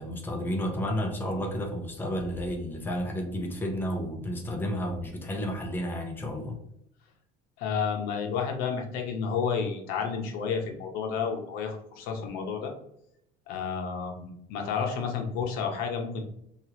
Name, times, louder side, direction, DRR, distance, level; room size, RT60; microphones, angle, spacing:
voice 1, 0.0-6.6, equal, 15° left, 2 dB, 0.5 m, -31 dB
voice 2, 7.6-12.7 13.5-16.2, left 6 dB, 75° left, 3 dB, 0.7 m, -31 dB
2.9 x 2.4 x 2.9 m, 0.75 s
cardioid pair, 160°, 15 cm